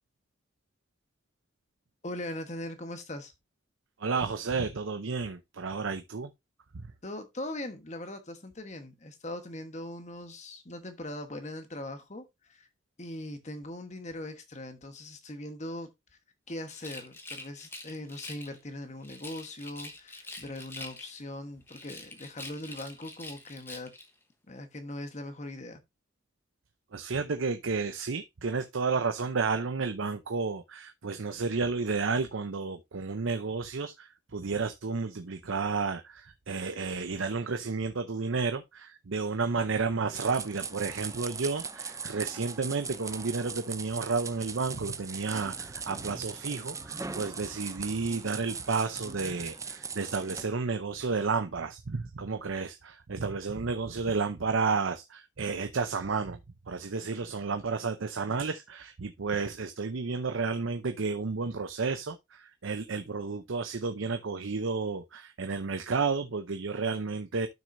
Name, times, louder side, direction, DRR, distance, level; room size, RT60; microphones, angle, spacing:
voice 1, 2.0-3.3 7.0-12.7 13.0-15.9 16.5-23.9 24.5-25.8 47.0-47.1, left 1 dB, 35° left, 1.2 m, -40 dB
voice 2, 4.0-6.3 6.7-6.8 26.9-56.4 56.7-67.5, right 4 dB, 80° right, 0.7 m, -32 dB
Rattle, 16.6-18.6 19.0-21.3 21.7-24.1, left 2 dB, 10° left, 1.1 m, -45 dB
sound 1, 40.1-50.4, right 5 dB, 15° right, 0.5 m, -39 dB
12.0 x 6.3 x 2.7 m
head